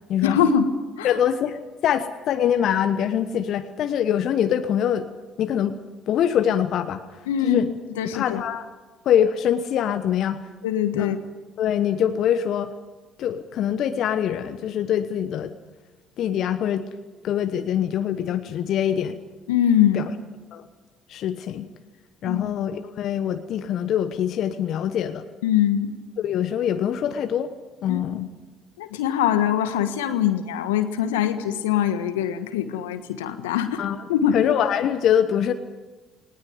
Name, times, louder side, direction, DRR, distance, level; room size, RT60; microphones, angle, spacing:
voice 1, 0.2-1.2 7.3-7.6 8.0-8.4 10.6-11.2 19.5-20.1 22.2-22.6 25.4-25.9 27.9-28.0 28.8-33.8 34.1-34.4, left 9 dB, 80° left, 10 dB, 1.4 m, -23 dB
voice 2, 1.0-5.1 5.4-5.8 6.1-7.0 7.4-7.7 8.1-8.7 9.0-10.4 10.9-11.1 11.6-12.7 13.2-15.5 16.2-16.9 17.2-19.2 19.9-20.0 20.5-20.6 21.1-21.7 22.2-25.2 26.2-27.5 27.8-28.3 33.8-34.0 34.3-35.5, left 9 dB, 60° left, 9 dB, 1.1 m, -24 dB
19.5 x 19.0 x 9.4 m, 1.2 s
hypercardioid pair, 55°, 0 cm